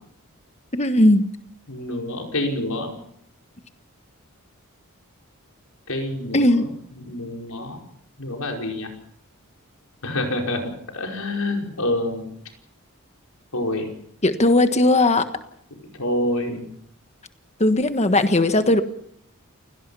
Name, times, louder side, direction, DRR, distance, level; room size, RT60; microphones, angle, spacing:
voice 1, 0.7-1.3 6.3-6.7 14.2-15.2 17.6-18.8, left 1 dB, 30° left, 9 dB, 1.5 m, -17 dB
voice 2, 1.7-3.0 5.9-7.8 8.2-8.9 10.0-12.3 13.5-13.9 16.0-16.6, left 1 dB, 85° left, 1 dB, 5.1 m, -27 dB
29.0 x 18.0 x 5.6 m, 0.68 s
head